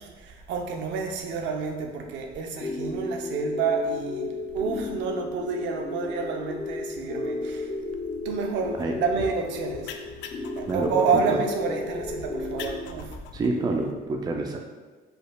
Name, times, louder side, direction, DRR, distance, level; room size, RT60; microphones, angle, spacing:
voice 1, 0.0-7.7 8.2-9.9 10.5-13.2, right 5 dB, 80° right, 2 dB, 0.7 m, -29 dB
sound 1, 2.6-12.8, left 3 dB, 35° left, 0.7 m, -33 dB
sound 2, 8.6-13.9, left 6 dB, 80° left, 0.4 m, -44 dB
voice 2, 10.7-11.4 13.3-14.6, right 3 dB, 20° right, 2 dB, 0.4 m, -27 dB
5.1 x 4.6 x 2.3 m, 1.3 s
cardioid pair, 155°, 19 cm